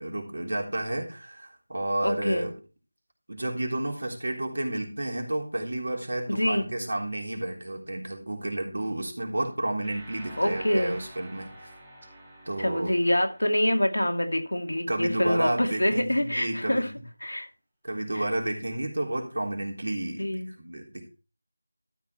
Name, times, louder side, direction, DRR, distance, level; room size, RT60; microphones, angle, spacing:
voice 1, 0.0-2.5 3.3-11.7 12.5-13.0 14.9-16.9 17.8-21.1, right 1 dB, 60° right, 1 dB, 3.5 m, -31 dB
voice 2, 2.0-2.5 6.3-6.6 10.4-10.9 12.6-16.9 17.2-17.5 18.1-18.2 20.2-20.5, left 1 dB, 85° left, 5 dB, 2.3 m, -26 dB
sound 1, 9.8-14.7, right 1 dB, 5° right, 2.2 m, -47 dB
13.0 x 6.2 x 4.4 m, 0.32 s
figure-of-eight pair, 170°, 0 cm